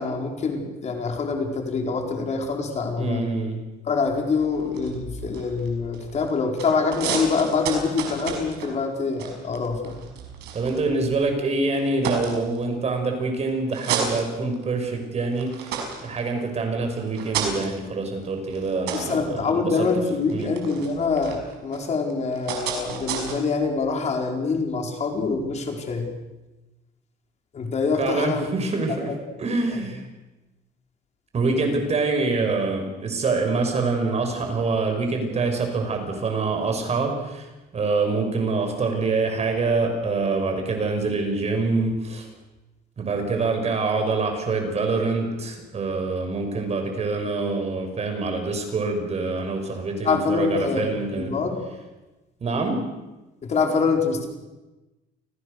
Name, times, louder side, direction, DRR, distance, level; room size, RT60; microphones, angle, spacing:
voice 1, 0.0-3.2 3.8-9.9 18.9-26.1 27.5-28.4 28.9-29.1 29.7-29.9 50.0-51.6 53.4-54.3, left 4 dB, 40° left, 2 dB, 4.7 m, -25 dB
voice 2, 3.0-3.6 10.5-19.7 20.3-20.5 28.0-29.1 29.4-30.0 31.3-37.5 37.7-42.3 43.0-51.3 52.4-52.8, right 3 dB, 40° right, 5 dB, 6.2 m, -25 dB
sound 1, 4.1-6.3 6.6-11.3 11.7-13.0 13.5-14.9 15.3-23.3, right 6 dB, 90° right, 5.8 m, -33 dB
29.5 x 20.0 x 6.7 m, 1.1 s
cardioid pair, 110°, 17 cm